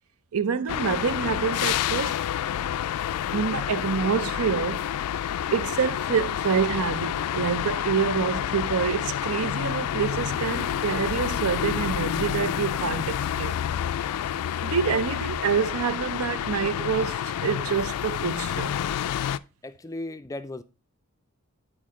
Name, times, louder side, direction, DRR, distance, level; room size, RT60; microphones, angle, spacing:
voice 1, 0.3-2.2 3.3-4.8 5.5-13.6 14.6-17.2 17.4-18.7, right 6 dB, 70° right, 0.5 m, -27 dB
sound 1, 0.7-19.4, left 10 dB, 90° left, 0.3 m, -29 dB
voice 2, 19.6-20.6, left 2 dB, 15° left, 0.4 m, -36 dB
9.4 x 4.7 x 3.7 m
head